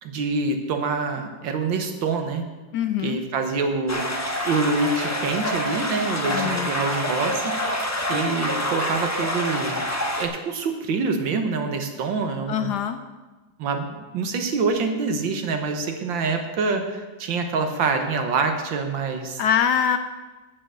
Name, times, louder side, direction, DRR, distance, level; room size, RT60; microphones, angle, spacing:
voice 1, 0.0-2.4 3.0-4.0 4.4-7.7 8.1-9.8 10.2-12.7 13.6-19.4, right 4 dB, 75° right, 6 dB, 1.8 m, -26 dB
voice 2, 2.7-3.2 6.3-6.7 12.5-13.0 19.4-20.0, left 8 dB, 70° left, 9 dB, 1.0 m, -23 dB
sound 1, 3.9-10.3, left 1 dB, 25° left, 0.4 m, -27 dB
9.0 x 7.0 x 7.5 m, 1.2 s
omnidirectional pair, 2.1 m